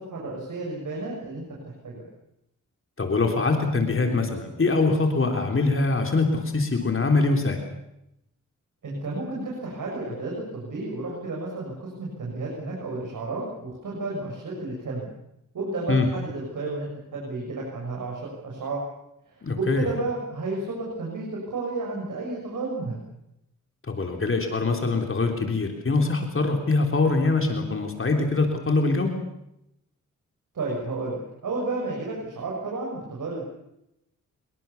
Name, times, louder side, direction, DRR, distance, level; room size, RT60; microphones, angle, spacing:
voice 1, 0.1-2.1 8.8-15.1 15.5-18.8 19.3-23.0 30.5-33.5, right 2 dB, 80° right, -2 dB, 7.0 m, -32 dB
voice 2, 3.0-7.6 15.9-16.1 19.4-19.9 23.9-29.1, left 3 dB, 40° left, 4 dB, 3.6 m, -23 dB
26.0 x 23.0 x 7.1 m, 0.84 s
wide cardioid pair, 100°, 31 cm